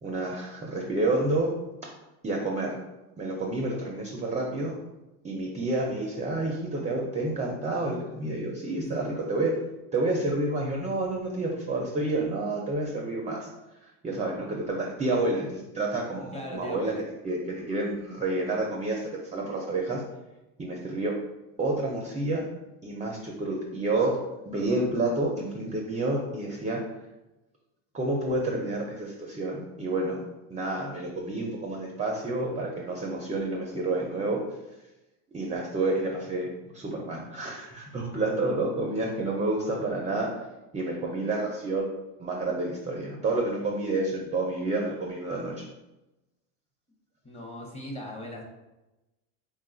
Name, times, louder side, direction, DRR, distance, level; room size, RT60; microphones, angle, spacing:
voice 1, 0.0-1.5 2.2-2.8 3.2-4.7 5.2-9.6 9.9-13.5 14.0-16.9 17.2-20.0 20.6-21.2 21.6-22.4 22.8-24.2 24.5-26.8 27.9-30.2 30.5-34.4 35.3-40.3 40.7-41.9 42.2-45.5, right 2 dB, 15° right, 0 dB, 0.4 m, -29 dB
voice 2, 8.8-9.1 16.3-17.0 47.2-48.4, left 1 dB, 15° left, 0 dB, 0.7 m, -38 dB
3.7 x 2.3 x 3.7 m, 1.0 s
supercardioid pair, 115°, 43 cm